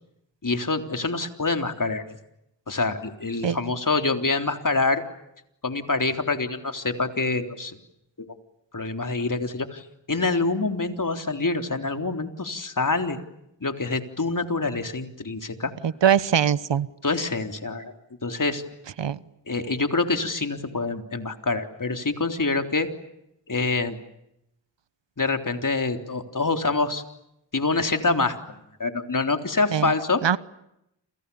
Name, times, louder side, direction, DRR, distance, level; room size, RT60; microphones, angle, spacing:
voice 1, 0.4-2.2 2.7-5.0 5.6-7.8 8.2-8.3 8.7-13.2 13.6-15.7 17.0-17.9 18.2-18.6 19.5-22.9 23.5-24.0 25.2-27.0 27.5-30.2, left 3 dB, 45° left, 6 dB, 3.7 m, -26 dB
voice 2, 15.8-16.9 19.0-19.2 29.7-29.9 30.2-30.4, right 8 dB, 75° right, 17 dB, 1.1 m, -21 dB
30.0 x 28.0 x 7.1 m, 0.82 s
cardioid pair, 45°, 44 cm